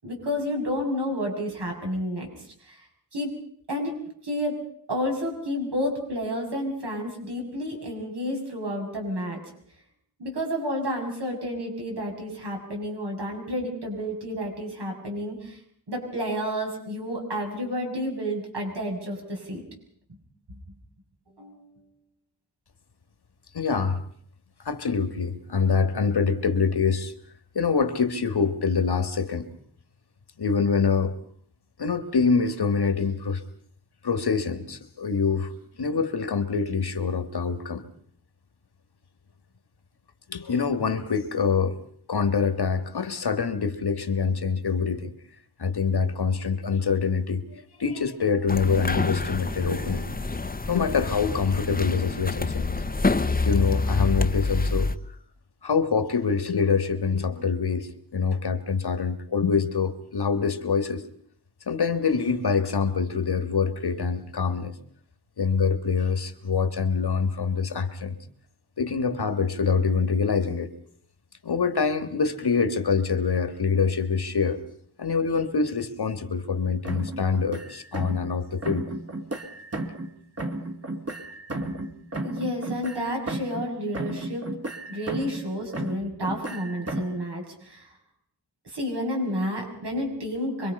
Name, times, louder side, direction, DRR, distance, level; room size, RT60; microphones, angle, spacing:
voice 1, 0.0-2.3 2.7-2.8 3.1-3.3 3.7-4.0 4.2-4.6 4.9-9.4 10.2-15.6 15.9-19.6 20.5-20.6 21.3-21.8 82.2-84.5 84.9-87.9 88.6-90.7, equal, 80° right, 7.3 m, -30 dB
voice 2, 23.5-24.0 24.7-27.1 27.6-29.5 30.4-31.2 31.8-33.4 34.0-35.5 35.8-37.8 40.3-41.8 42.1-45.1 45.6-50.1 50.7-52.7 53.5-54.9 55.6-61.0 61.7-64.7 65.4-68.2 68.8-70.7 71.4-74.6 75.0-78.9, left 5 dB, 70° left, 1.9 m, -25 dB
sound 1, 48.5-55.0, left 3 dB, 20° left, 0.9 m, -27 dB
sound 2, 76.8-78.3 78.6-80.1 80.4-83.7 83.9-85.5 85.7-87.2, right 2 dB, 35° right, 2.2 m, -34 dB
26.0 x 23.5 x 5.5 m
wide cardioid pair, 100°, 40 cm